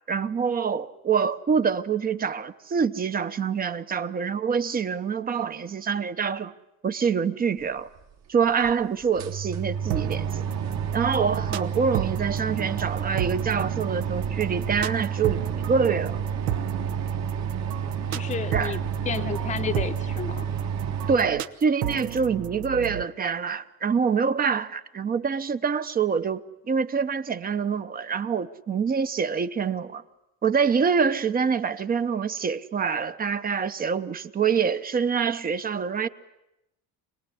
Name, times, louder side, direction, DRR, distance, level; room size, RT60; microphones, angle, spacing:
voice 1, 0.1-6.5 6.8-7.9 8.3-10.4 10.9-16.2 18.5-18.8 21.1-26.4 26.7-30.0 30.4-36.1, right 6 dB, 25° right, 0.9 m, -25 dB
sound 1, 8.0-8.1 8.6-8.7 9.0-21.2, right 7 dB, 45° right, 1.7 m, -30 dB
sound 2, 9.9-23.0, right 11 dB, 70° right, 1.2 m, -34 dB
voice 2, 18.1-20.5, left 6 dB, 20° left, 0.9 m, -32 dB
26.0 x 19.5 x 9.9 m
cardioid pair, 135°, 37 cm